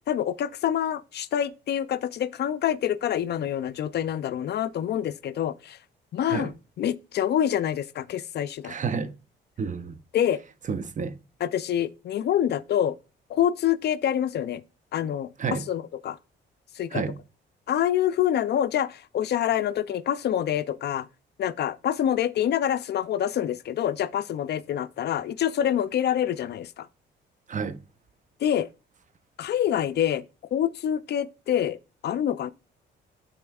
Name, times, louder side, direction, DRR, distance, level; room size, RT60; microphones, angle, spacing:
voice 1, 0.1-5.8 6.1-6.5 6.8-8.7 10.1-10.4 11.4-13.0 13.3-14.6 14.9-15.3 15.7-16.2 16.8-17.0 17.7-21.1 21.4-26.9 28.4-28.7 29.4-30.2 30.5-31.8 32.0-32.5, left 10 dB, 55° left, 0.4 m, -26 dB
voice 2, 8.6-9.1 9.6-10.0 10.7-11.2 15.4-15.6 16.9-17.2 27.5-27.8, right 5 dB, 40° right, 0.6 m, -30 dB
12.0 x 4.2 x 2.3 m
cardioid pair, 90°, 20 cm